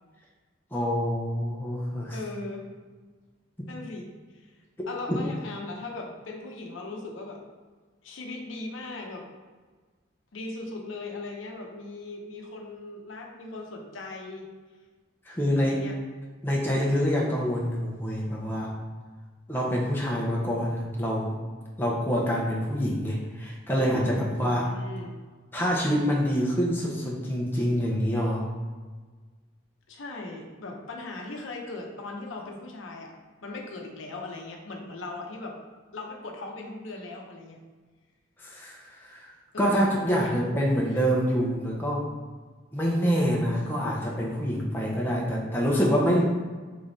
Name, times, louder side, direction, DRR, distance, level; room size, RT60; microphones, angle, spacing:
voice 1, 0.7-2.2 4.8-5.2 15.3-15.8 16.4-18.7 19.5-21.3 21.8-24.7 25.5-28.5 38.4-39.3 39.6-42.1 42.7-46.2, equal, 10° left, -3 dB, 0.6 m, -26 dB
voice 2, 2.1-2.7 3.7-4.5 4.9-7.4 8.0-9.3 10.3-14.5 15.5-16.0 24.3-25.2 29.9-33.1 33.4-35.5 35.9-37.6 39.5-39.8 40.1-40.5 40.9-41.0, left 2 dB, 80° left, 1 dB, 0.7 m, -39 dB
3.7 x 3.3 x 4.0 m, 1.4 s
head